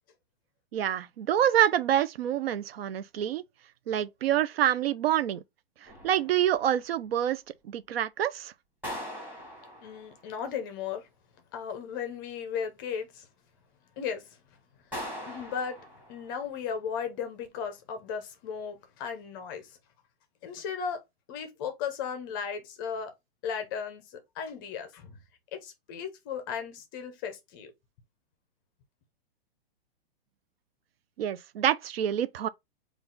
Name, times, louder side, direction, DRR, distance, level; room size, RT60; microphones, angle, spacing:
voice 1, 0.7-3.4 3.9-5.4 5.8-8.5 31.2-32.5, right 11 dB, 70° right, 0.5 m, -27 dB
sound 1, 5.9-6.8 8.8-10.4 14.9-16.5, equal, 5° right, 1.5 m, -41 dB
voice 2, 9.8-11.1 11.5-13.3 14.0-14.4 15.3-15.8 16.1-19.8 20.4-21.0 21.3-23.1 23.4-25.2 25.5-27.7, left 7 dB, 20° left, 0.5 m, -36 dB
3.8 x 2.4 x 3.8 m
hypercardioid pair, 160°, 31 cm